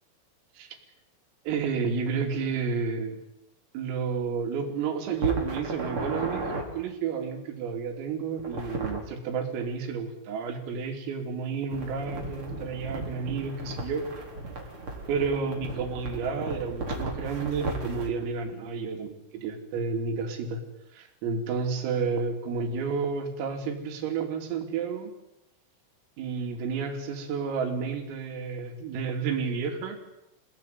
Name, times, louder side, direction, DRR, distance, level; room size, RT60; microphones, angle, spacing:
voice 1, 1.5-3.2 3.7-14.1 15.1-20.6 20.9-25.1 26.2-30.0, right 5 dB, 80° right, 5 dB, 5.7 m, -31 dB
sound 1, 5.2-6.6 8.4-9.0 11.7-18.1, right 2 dB, 25° right, 4.6 m, -35 dB
28.5 x 18.0 x 9.5 m, 0.86 s
omnidirectional pair, 5.9 m